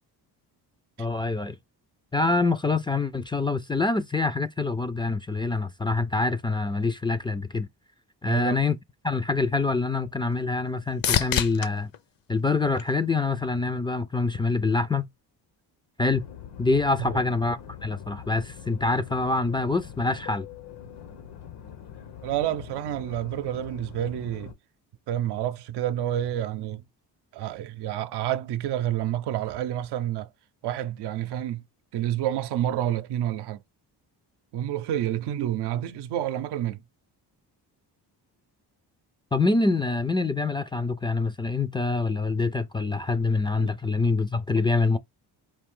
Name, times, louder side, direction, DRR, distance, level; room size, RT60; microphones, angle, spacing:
voice 1, 1.0-1.6 2.1-7.7 8.2-8.8 9.0-11.9 12.3-15.1 16.0-16.3 16.6-20.5 39.3-45.0, left 3 dB, 15° left, 0.3 m, -25 dB
voice 2, 8.3-8.6 17.0-17.2 22.2-24.5 25.1-26.8 27.3-30.3 30.6-31.6 31.9-33.6 34.5-36.8 43.6-43.7, right 11 dB, 85° right, 0.6 m, -29 dB
sound 1, 9.3-13.5 14.0-14.6 22.5-22.6, left 9 dB, 60° left, 0.7 m, -32 dB
sound 2, 16.1-24.5, left 9 dB, 85° left, 1.3 m, -43 dB
4.8 x 2.5 x 3.7 m
cardioid pair, 115°, 40 cm